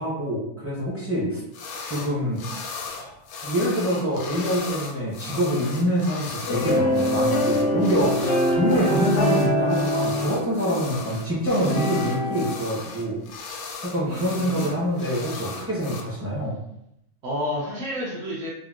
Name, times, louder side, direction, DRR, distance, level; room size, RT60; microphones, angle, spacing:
voice 1, 0.0-1.4 1.9-2.4 2.9-3.1 3.4-13.2 13.8-16.6, equal, 20° right, -8 dB, 0.3 m, -25 dB
sound 1, 1.5-2.1 2.4-16.0, left 5 dB, 65° left, 0.7 m, -37 dB
sound 2, 6.5-12.5, left 1 dB, 85° left, 1.1 m, -24 dB
voice 2, 14.0-14.8 17.2-18.5, left 1 dB, 70° right, -7 dB, 1.0 m, -30 dB
3.7 x 2.1 x 2.3 m, 0.81 s
omnidirectional pair, 1.6 m